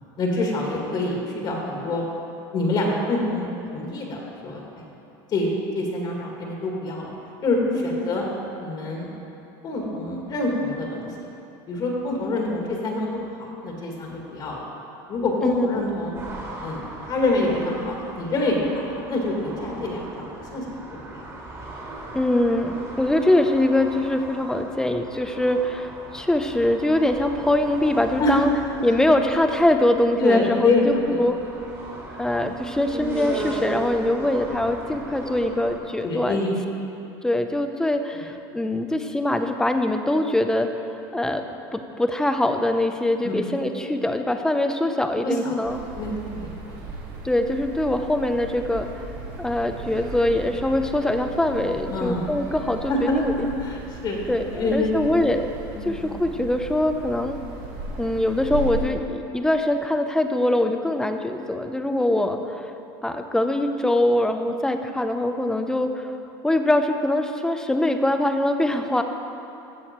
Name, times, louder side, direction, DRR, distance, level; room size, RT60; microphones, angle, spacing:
voice 1, 0.2-2.0 2.5-4.2 4.4-4.9 5.3-7.1 7.4-8.3 8.6-9.1 9.6-11.1 11.7-14.6 15.1-16.1 16.6-20.8 21.1-21.3 28.2-28.5 28.8-29.0 30.2-31.2 36.0-36.6 38.1-38.2 43.2-43.4 45.2-45.5 46.0-46.7 51.9-52.3 52.9-54.2 54.5-54.9 55.7-56.1, left 2 dB, 40° left, -1 dB, 1.9 m, -26 dB
voice 2, 7.8-8.1 15.4-15.8 22.1-28.5 28.8-31.4 32.2-36.4 37.2-40.7 41.1-41.4 41.7-45.8 47.2-49.1 49.4-53.3 54.3-55.5 55.8-57.4 58.0-62.7 63.0-66.1 66.4-69.0, left 1 dB, 5° left, 6 dB, 0.6 m, -23 dB
sound 1, 16.1-35.8, right 2 dB, 25° right, 2.2 m, -37 dB
sound 2, 45.6-58.8, right 3 dB, 70° right, 1.8 m, -36 dB
15.0 x 6.4 x 4.4 m, 2.8 s
supercardioid pair, 125°, 11 cm